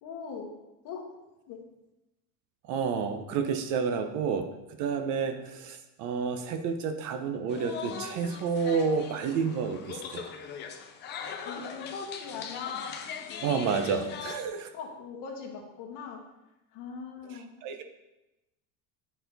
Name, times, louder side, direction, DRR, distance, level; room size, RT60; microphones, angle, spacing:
voice 1, 0.0-0.5 0.8-1.0 1.5-1.6 5.2-5.3 11.4-12.7 14.7-16.2 16.7-17.5, left 5 dB, 50° left, -1 dB, 1.4 m, -40 dB
voice 2, 2.7-4.5 4.8-10.3 13.4-14.7 17.3-17.8, right 6 dB, 50° right, 8 dB, 0.7 m, -30 dB
sound 1, 7.5-14.5, left 6 dB, 30° left, 0.4 m, -40 dB
9.1 x 4.2 x 3.9 m, 0.96 s
cardioid pair, 175°, 40 cm